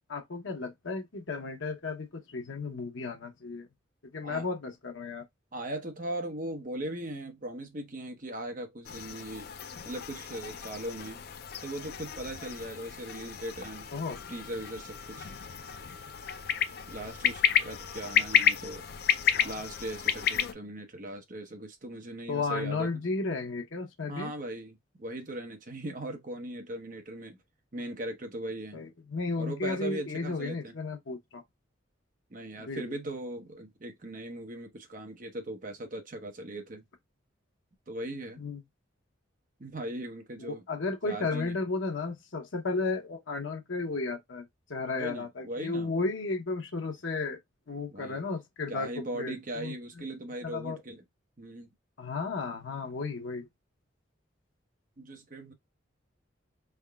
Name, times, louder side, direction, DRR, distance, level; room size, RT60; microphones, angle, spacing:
voice 1, 0.1-3.7 4.1-5.2 13.9-14.2 19.3-19.5 22.3-24.3 28.7-31.4 32.6-32.8 38.4-38.6 40.4-47.4 47.7-50.0 50.4-50.8 52.0-53.5, left 3 dB, 80° left, 0.8 m, -34 dB
voice 2, 5.5-9.5 9.8-11.2 11.6-13.9 14.3-15.3 16.9-18.9 19.4-23.0 24.1-27.4 27.7-28.9 29.4-30.7 32.3-36.8 37.9-38.4 39.6-40.6 41.1-41.6 45.0-45.9 47.9-48.2 48.7-51.0 51.4-51.7 55.0-55.5, right 1 dB, 45° right, 0.9 m, -39 dB
sound 1, 8.8-20.5, left 9 dB, 50° left, 0.4 m, -31 dB
4.6 x 3.5 x 2.3 m
head